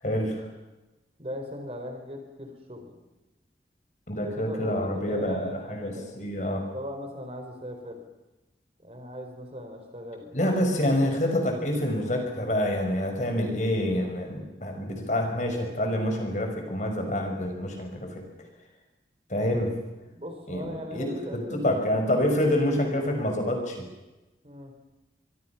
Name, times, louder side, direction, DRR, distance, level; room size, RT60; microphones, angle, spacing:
voice 1, 0.0-0.5 4.1-6.7 10.3-18.2 19.3-19.7 20.5-23.8, left 1 dB, 45° left, 3 dB, 5.5 m, -27 dB
voice 2, 1.2-3.0 4.1-6.2 6.7-8.0 8.8-10.3 20.1-21.7 24.4-24.7, equal, 35° right, 4 dB, 4.2 m, -39 dB
24.5 x 24.0 x 5.9 m, 1.0 s
head